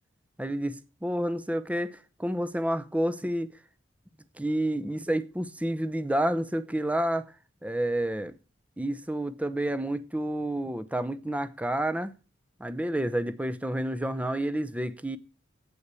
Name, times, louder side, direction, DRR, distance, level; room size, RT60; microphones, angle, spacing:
voice 1, 0.4-3.5 4.4-7.2 7.6-8.4 8.8-12.1 12.6-15.2, right 1 dB, 10° right, 0.7 m, -29 dB
8.6 x 8.2 x 8.2 m
head